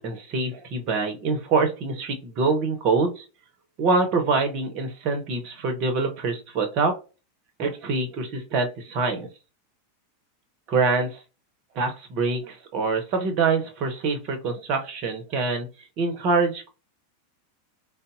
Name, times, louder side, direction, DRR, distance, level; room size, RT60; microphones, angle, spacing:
voice 1, 0.0-3.2 3.8-6.9 7.6-9.3 10.7-11.2 11.7-16.7, right 4 dB, 40° right, 5 dB, 0.8 m, -25 dB
3.9 x 2.1 x 2.5 m, 0.31 s
figure-of-eight pair, 90°, 0 cm